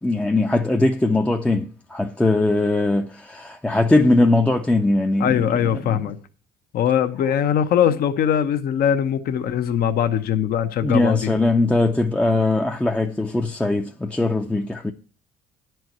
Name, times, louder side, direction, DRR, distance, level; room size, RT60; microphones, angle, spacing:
voice 1, 0.0-5.5 5.8-6.0 10.8-14.9, left 2 dB, 5° left, 0.5 m, -20 dB
voice 2, 5.2-6.2 6.7-11.4, left 9 dB, 65° left, 0.9 m, -21 dB
10.5 x 4.6 x 7.8 m
cardioid pair, 110°, 17 cm